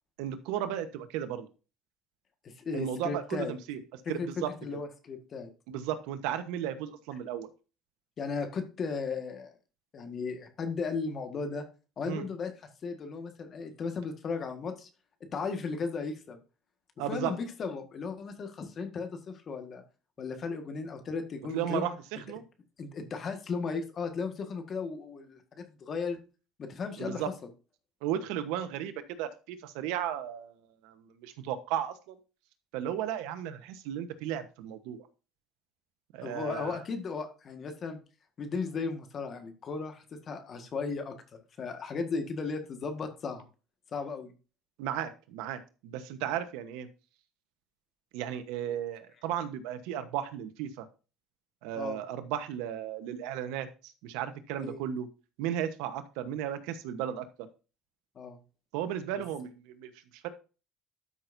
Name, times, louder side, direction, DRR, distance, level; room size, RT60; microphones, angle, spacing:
voice 1, 0.2-1.5 2.7-3.8 4.1-4.5 5.7-7.5 12.1-12.2 17.0-17.3 21.5-22.4 27.0-27.3 28.0-28.9 29.2-30.5 30.8-32.2 32.7-35.0 36.1-36.8 44.8-46.9 48.1-50.8 51.6-55.1 55.4-57.2 58.7-59.9 60.2-60.3, right 10 dB, 85° right, 10 dB, 1.1 m, -35 dB
voice 2, 2.4-3.5 4.2-5.5 8.2-9.6 9.9-11.7 12.0-12.5 12.8-14.9 15.3-16.4 17.0-19.8 20.2-21.9 22.8-26.2 26.6-27.5 36.2-38.0 38.4-41.1 41.6-43.4 43.9-44.3 51.7-52.0 54.6-54.8 58.1-58.4 59.1-59.2, left 4 dB, 40° left, 6 dB, 1.6 m, -36 dB
12.5 x 6.1 x 2.7 m, 0.34 s
cardioid pair, 105°, 0 cm